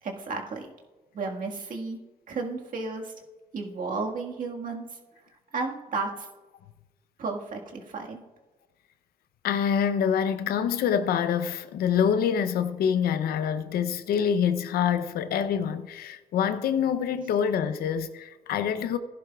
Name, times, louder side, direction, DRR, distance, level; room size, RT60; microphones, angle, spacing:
voice 1, 0.0-0.7 1.1-2.0 2.3-3.1 3.5-4.9 5.5-6.3 7.2-8.2, right 3 dB, 60° right, 1.7 m, -33 dB
voice 2, 9.4-19.0, left 8 dB, 90° left, 0.6 m, -26 dB
15.5 x 11.0 x 2.3 m
cardioid pair, 75°, 15 cm